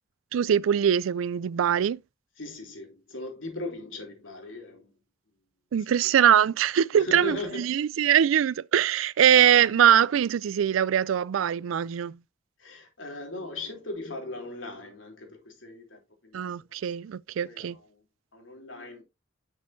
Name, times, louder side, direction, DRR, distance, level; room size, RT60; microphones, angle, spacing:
voice 1, 0.3-2.0 5.7-12.1 16.3-17.8, right 9 dB, 85° right, 0.3 m, -22 dB
voice 2, 2.3-4.9 5.8-6.1 6.9-7.8 9.6-9.7 12.6-16.8 17.4-18.1 18.3-19.0, left 2 dB, 75° left, 3.3 m, -39 dB
10.5 x 6.2 x 2.7 m
head